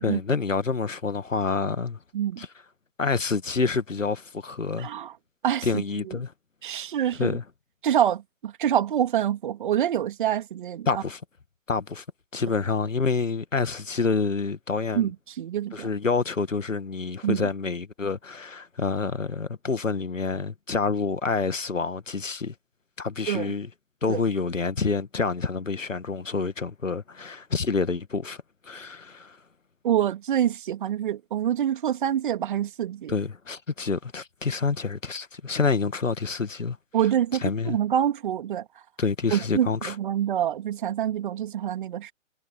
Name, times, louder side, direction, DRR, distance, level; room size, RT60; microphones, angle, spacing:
voice 1, 0.0-2.0 2.4-2.5 3.0-4.9 5.6-6.3 7.2-7.4 10.9-11.2 11.7-12.0 12.3-15.1 15.7-22.5 23.0-23.7 24.0-29.4 33.1-36.8 37.4-37.8 39.0-40.0, left 4 dB, 70° left, 2.1 m, -27 dB
voice 2, 4.8-5.1 5.4-6.2 6.6-7.4 7.8-11.0 14.9-15.9 17.2-17.5 23.3-23.5 24.1-24.2 29.8-33.1 36.9-38.6 39.3-42.1, right 10 dB, 40° right, 2.9 m, -26 dB
figure-of-eight pair, 130°, 39 cm